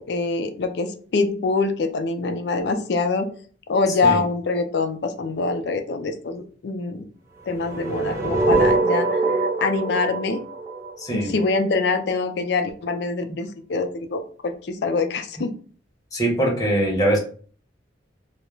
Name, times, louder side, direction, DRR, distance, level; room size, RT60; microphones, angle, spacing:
voice 1, 0.0-3.3 3.7-7.0 7.5-10.4 11.1-15.5, left 3 dB, 65° left, 7 dB, 0.4 m, -24 dB
sound 1, 7.5-11.6, right 3 dB, 15° right, 0.5 m, -23 dB
voice 2, 11.0-11.3 16.1-17.2, right 1 dB, 20° left, -3 dB, 0.8 m, -22 dB
2.3 x 2.0 x 3.0 m, 0.43 s
head